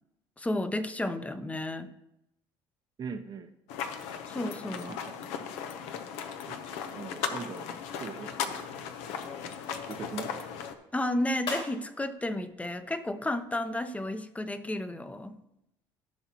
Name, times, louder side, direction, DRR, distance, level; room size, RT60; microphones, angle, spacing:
voice 1, 0.4-1.9 4.3-5.0 10.9-15.4, left 1 dB, 10° left, 11 dB, 0.7 m, -32 dB
voice 2, 3.0-3.5 4.9-5.2 6.5-7.7 8.0-8.7 9.9-10.3, right 5 dB, 40° right, 6 dB, 0.7 m, -41 dB
sound 1, 3.7-10.7, left 7 dB, 80° left, 0.8 m, -37 dB
sound 2, 11.3-13.8, left 3 dB, 50° left, 2.6 m, -46 dB
14.5 x 5.7 x 2.9 m, 0.85 s
supercardioid pair, 85°, 11 cm